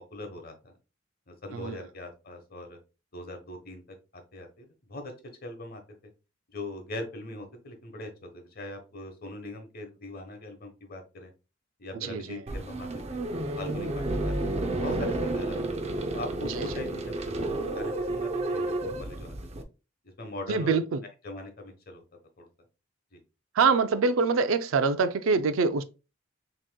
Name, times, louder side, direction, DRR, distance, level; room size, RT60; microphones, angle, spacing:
voice 1, 0.1-0.8 1.3-2.8 3.1-5.1 5.4-5.8 6.5-11.3 11.8-13.2 13.6-15.6 16.1-19.3 20.0-20.8 21.2-22.0 22.4-22.5 23.1-23.2, left 1 dB, 50° left, 1.1 m, -41 dB
voice 2, 11.9-12.4 16.5-16.8 20.5-21.0 23.5-25.8, right 4 dB, 85° right, 0.4 m, -25 dB
sound 1, 12.5-19.6, right 2 dB, 35° right, 0.5 m, -31 dB
6.1 x 2.9 x 2.2 m
head